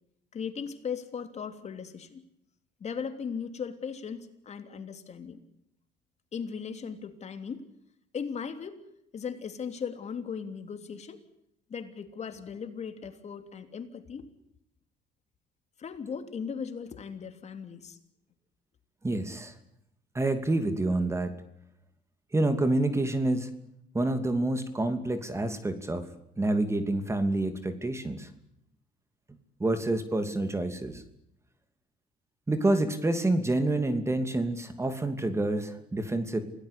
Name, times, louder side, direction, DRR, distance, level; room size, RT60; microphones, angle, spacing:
voice 1, 0.3-2.2 2.8-5.4 6.3-7.6 8.1-8.8 9.1-11.2 11.7-14.3 15.8-18.0, left 6 dB, 40° left, 8 dB, 3.2 m, -37 dB
voice 2, 19.0-19.5 20.1-21.3 22.3-23.5 23.9-26.1 26.4-28.3 29.6-31.0 32.5-36.4, right 2 dB, 15° right, 9 dB, 2.8 m, -28 dB
28.0 x 18.0 x 8.5 m, 0.79 s
cardioid pair, 110°, 17 cm